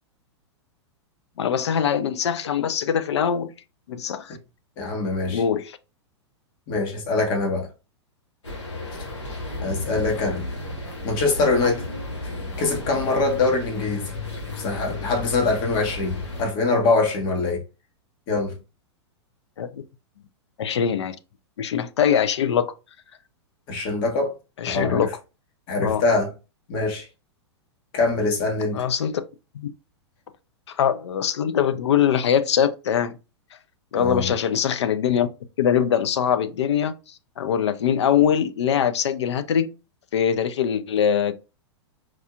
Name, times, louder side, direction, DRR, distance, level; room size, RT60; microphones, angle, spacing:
voice 1, 1.4-3.5 3.9-4.4 5.3-5.8 19.6-19.8 20.6-21.2 21.6-22.7 24.6-25.1 25.8-26.0 28.7-29.2 29.5-29.7 30.7-33.2 33.9-35.3 35.6-39.7 40.1-41.3, left 8 dB, 70° left, 0.6 m, -22 dB
voice 2, 4.8-5.4 6.7-7.7 9.6-10.4 11.0-11.9 12.6-14.1 14.5-17.6 18.3-18.6 23.7-24.3 24.7-25.1 25.7-26.3 26.7-27.1 27.9-28.8 33.9-34.3, left 3 dB, 50° left, 1.4 m, -23 dB
sound 1, 8.4-16.4, left 2 dB, 85° left, 1.7 m, -33 dB
4.7 x 2.8 x 2.4 m
hypercardioid pair, 105°, 15 cm